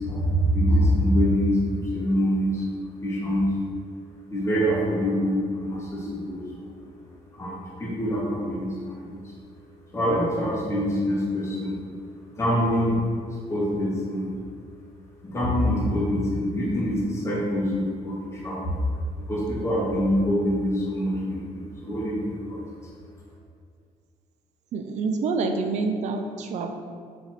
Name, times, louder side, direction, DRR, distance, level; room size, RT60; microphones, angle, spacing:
voice 1, 0.0-2.7 3.0-3.6 4.3-6.7 7.3-9.3 9.9-11.8 12.3-13.0 13.5-14.4 15.2-18.8 19.2-22.6, equal, 20° left, -6 dB, 0.8 m, -25 dB
voice 2, 24.7-26.7, right 4 dB, 50° right, 5 dB, 0.4 m, -27 dB
4.4 x 2.6 x 4.1 m, 2.1 s
cardioid pair, 140°, 15 cm